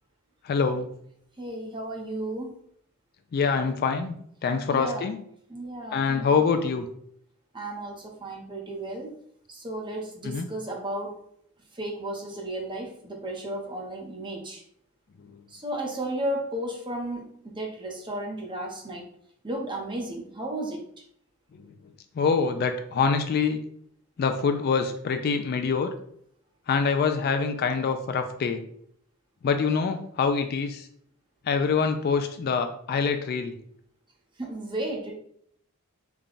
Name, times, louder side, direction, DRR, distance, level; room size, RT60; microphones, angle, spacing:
voice 1, 0.4-0.9 3.3-4.2 4.4-5.2 5.9-6.9 10.2-10.5 15.3-15.4 21.6-21.7 22.2-23.6 24.2-25.9 26.7-28.6 29.4-30.9 31.4-33.5, left 5 dB, 45° left, 7 dB, 0.3 m, -25 dB
voice 2, 1.4-2.5 4.7-5.1 5.5-6.3 7.5-9.1 9.5-11.2 11.7-14.6 15.5-19.0 19.4-20.8 34.4-35.1, right 1 dB, 20° right, 0 dB, 0.7 m, -34 dB
3.5 x 2.2 x 3.8 m, 0.67 s
head